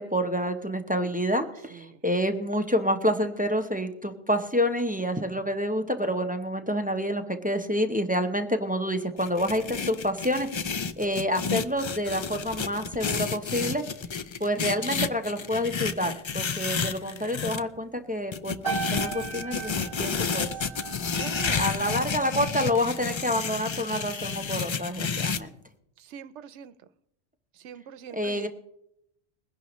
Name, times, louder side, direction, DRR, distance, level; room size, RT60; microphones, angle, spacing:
voice 1, 0.0-10.7 11.0-13.8 14.4-18.6 18.9-20.5 21.6-25.5 28.1-28.5, equal, 10° right, 0.7 m, -28 dB
voice 2, 1.7-2.0 21.1-21.7 26.0-26.8 27.5-28.5, right 8 dB, 85° right, 1.0 m, -42 dB
sound 1, 9.2-17.6 18.3-25.4, left 5 dB, 50° left, 0.3 m, -31 dB
sound 2, 18.6-23.3 23.5-23.9, right 6 dB, 30° left, 4.6 m, -37 dB
21.0 x 11.0 x 3.1 m
omnidirectional pair, 1.1 m